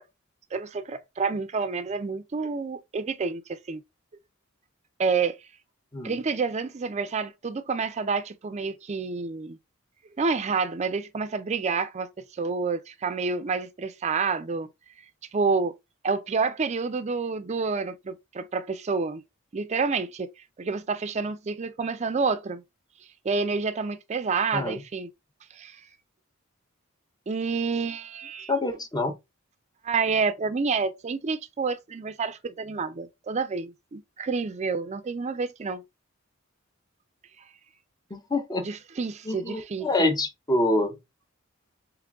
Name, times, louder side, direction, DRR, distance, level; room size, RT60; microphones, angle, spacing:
voice 1, 0.5-3.8 5.0-5.4 6.0-9.6 10.2-14.7 15.3-15.7 16.0-19.2 19.5-20.3 20.6-22.6 23.2-25.1 25.6-25.7 27.3-28.5 29.8-35.8 38.6-40.1, right 4 dB, 35° right, 0.4 m, -28 dB
voice 2, 28.5-29.1 38.1-38.7 39.3-41.0, left 2 dB, 20° left, 0.7 m, -26 dB
3.7 x 3.1 x 3.5 m
head